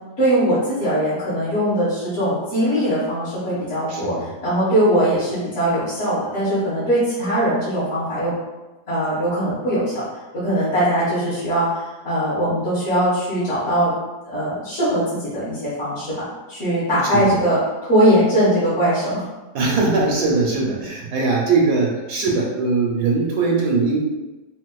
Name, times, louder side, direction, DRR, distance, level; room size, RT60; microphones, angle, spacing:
voice 1, 0.2-8.3 8.9-10.0 10.3-13.9 14.2-19.2, right 1 dB, 45° left, -13 dB, 1.4 m, -21 dB
voice 2, 3.9-4.3 17.1-17.4 19.5-24.0, right 3 dB, 80° right, -2 dB, 1.1 m, -20 dB
4.0 x 2.4 x 2.2 m, 1.1 s
omnidirectional pair, 1.8 m